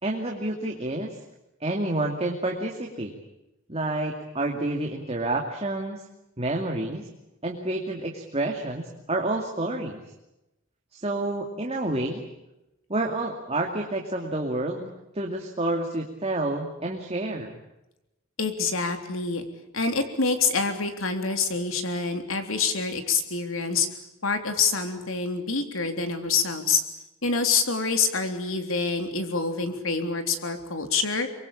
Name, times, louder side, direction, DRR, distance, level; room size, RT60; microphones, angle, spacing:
voice 1, 0.0-1.2 1.6-3.1 3.7-6.0 6.4-7.1 7.4-10.0 10.9-12.3 12.9-14.9 15.1-17.5, right 2 dB, 30° right, 1 dB, 2.5 m, -29 dB
voice 2, 18.4-19.4 19.7-23.9 24.2-26.8 27.2-31.3, left 4 dB, 85° left, 7 dB, 3.6 m, -26 dB
25.0 x 23.0 x 8.6 m, 0.93 s
head